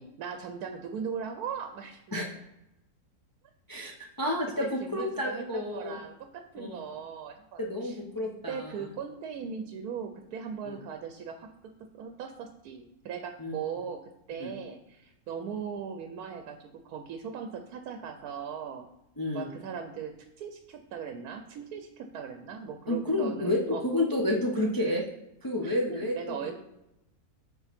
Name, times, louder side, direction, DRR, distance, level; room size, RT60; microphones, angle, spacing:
voice 1, 0.0-2.0 3.9-4.1 4.6-8.0 8.5-11.5 11.9-14.0 14.3-18.9 19.3-23.9 25.6-26.5, right 7 dB, 80° right, 6 dB, 1.1 m, -39 dB
voice 2, 4.2-6.0 6.6-6.8 7.6-8.8 10.7-10.8 13.4-13.5 14.4-14.5 19.2-19.5 22.9-25.0 25.4-26.5, left 1 dB, 35° left, -1 dB, 0.3 m, -30 dB
7.2 x 3.8 x 3.5 m, 0.89 s
omnidirectional pair, 1.6 m